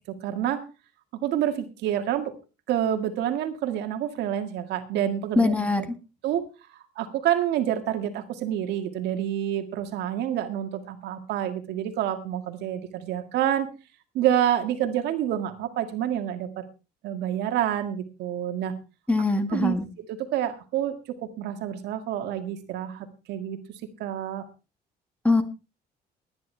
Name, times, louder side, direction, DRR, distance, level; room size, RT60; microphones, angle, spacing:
voice 1, 0.1-0.6 1.1-2.3 2.7-5.5 6.2-6.4 6.7-13.7 14.1-16.6 17.0-18.7 19.5-19.8 20.1-23.6 24.0-24.4, right 11 dB, 80° right, 7 dB, 1.9 m, -28 dB
voice 2, 5.4-5.9 19.1-19.8 25.2-25.4, left 3 dB, 10° left, 7 dB, 2.1 m, -22 dB
19.5 x 10.5 x 3.3 m, 0.30 s
cardioid pair, 110°, 17 cm